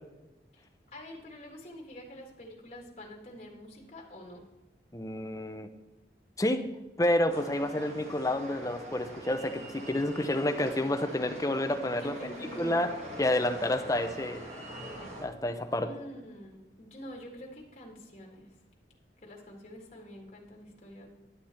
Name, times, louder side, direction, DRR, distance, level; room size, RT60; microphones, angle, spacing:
voice 1, 0.5-4.5 11.9-12.9 15.8-18.6 19.2-21.1, equal, 35° left, -1 dB, 1.8 m, -47 dB
voice 2, 4.9-5.7 6.4-6.6 7.0-12.1 12.6-12.9 13.2-14.4 15.2-15.9, left 1 dB, 20° left, 7 dB, 0.6 m, -29 dB
sound 1, 7.3-15.3, right 1 dB, 40° right, 1.6 m, -44 dB
11.0 x 8.0 x 4.3 m, 1.0 s
head